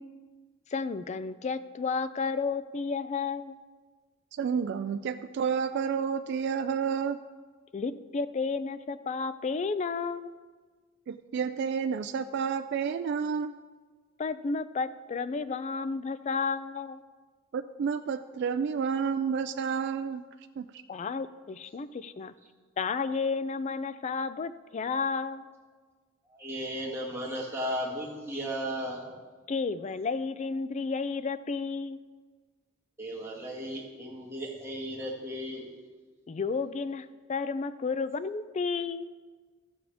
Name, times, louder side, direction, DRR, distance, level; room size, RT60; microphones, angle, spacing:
voice 1, 0.7-3.6 7.7-10.3 14.2-17.0 20.9-22.3 22.8-25.5 29.5-32.0 36.3-39.0, left 4 dB, 35° left, 14 dB, 0.3 m, -32 dB
voice 2, 4.4-7.2 11.1-13.5 17.5-20.3 20.6-20.7, right 6 dB, 55° right, 8 dB, 0.3 m, -30 dB
voice 3, 26.3-29.0 33.0-35.7, equal, 15° right, -4 dB, 1.9 m, -35 dB
14.0 x 7.1 x 3.5 m, 1.4 s
head